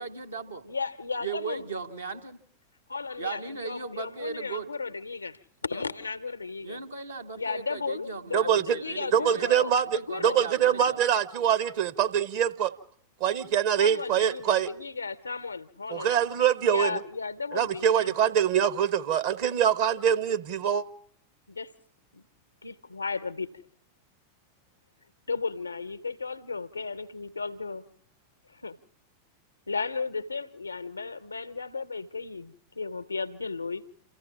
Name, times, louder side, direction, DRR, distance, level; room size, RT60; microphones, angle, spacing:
voice 1, 0.0-0.6 1.2-2.4 3.2-4.7 5.7-5.9 6.6-9.6 9.9-11.0, right 4 dB, 80° right, 1.4 m, -37 dB
voice 2, 0.6-1.6 2.9-6.8 7.4-10.4 13.8-16.1 16.6-18.1 21.5-21.7 22.1-22.3 22.6-23.6 25.3-27.8 28.5-28.8 29.7-33.8, left 4 dB, 80° left, 0.8 m, -35 dB
voice 3, 8.3-8.8 9.1-12.7 13.2-14.7 15.9-17.0 17.5-20.8, right 9 dB, 50° right, 0.9 m, -24 dB
27.5 x 14.5 x 7.1 m
figure-of-eight pair, 90°, 0 cm